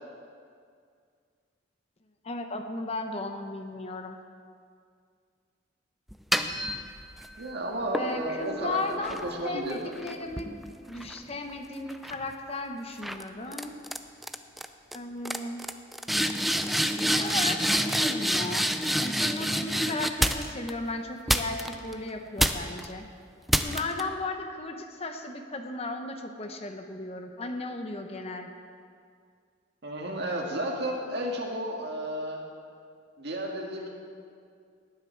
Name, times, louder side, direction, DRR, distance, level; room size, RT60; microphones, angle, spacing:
voice 1, 2.2-4.2 7.9-10.5 10.9-13.7 14.9-15.6 16.8-18.7 19.0-23.1 23.6-28.5, left 2 dB, 30° left, 5 dB, 0.9 m, -35 dB
sound 1, 6.1-7.3 7.9-11.5 11.9-12.3 13.0-13.2 13.5-14.0 14.2-14.6 14.9-15.0 15.2-20.7 21.3-21.9 22.4-22.9 23.5-24.0, equal, ahead, 0.4 m, -28 dB
voice 2, 7.4-9.9 29.8-32.4 33.2-33.9, right 1 dB, 60° right, 0 dB, 1.9 m, -32 dB
18.0 x 9.6 x 4.6 m, 2.2 s
head